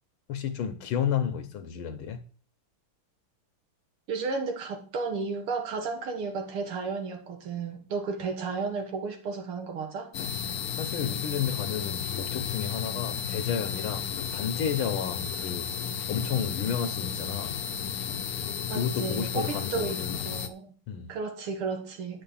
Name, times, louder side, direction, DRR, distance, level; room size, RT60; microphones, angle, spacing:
voice 1, 0.3-2.2 10.8-15.8 16.1-17.6 18.7-20.2 20.9-21.1, left 7 dB, 75° left, 1.7 m, -32 dB
voice 2, 4.1-10.1 18.7-20.7 21.1-22.2, right 4 dB, 80° right, 2.4 m, -33 dB
sound 1, 10.1-20.5, left 8 dB, 60° left, 1.1 m, -33 dB
9.7 x 6.9 x 5.5 m
omnidirectional pair, 2.3 m